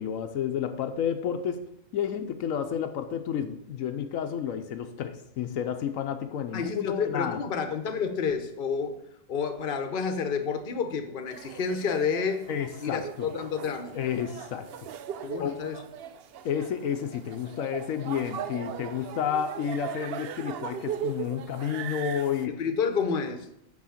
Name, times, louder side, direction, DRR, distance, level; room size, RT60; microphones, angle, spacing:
voice 1, 0.0-1.6 1.9-7.4 12.5-13.3 13.9-14.9 15.4-15.5 16.4-22.6, left 8 dB, 80° left, 7 dB, 1.1 m, -31 dB
voice 2, 6.5-9.0 9.3-12.4 12.8-14.0 15.2-15.8 22.5-23.5, left 5 dB, 45° left, 7 dB, 1.0 m, -29 dB
sound 1, 11.3-22.5, right 8 dB, 60° right, 0.7 m, -39 dB
6.2 x 5.6 x 7.1 m, 0.78 s
omnidirectional pair, 1.4 m